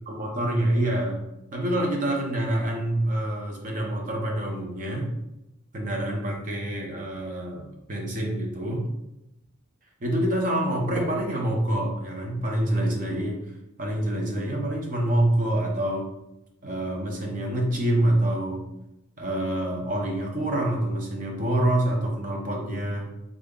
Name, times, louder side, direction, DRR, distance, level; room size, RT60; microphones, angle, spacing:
voice 1, 0.1-1.2 1.5-5.1 5.7-8.8 10.0-13.4 13.8-16.1 16.6-18.7 19.2-23.1, right 1 dB, 35° right, 0 dB, 0.7 m, -26 dB
3.6 x 2.1 x 3.6 m, 0.87 s
head